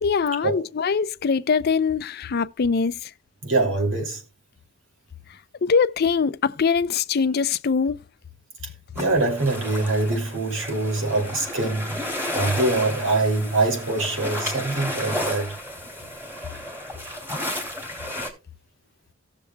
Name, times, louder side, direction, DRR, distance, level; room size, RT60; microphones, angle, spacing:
voice 1, 0.0-3.1 5.6-8.0, left 5 dB, 55° left, 0.5 m, -22 dB
voice 2, 3.4-4.2 8.9-12.0 12.3-15.5, right 2 dB, 85° right, 2.6 m, -24 dB
sound 1, 9.0-18.3, left 1 dB, 15° right, 2.5 m, -32 dB
17.5 x 6.8 x 2.2 m
head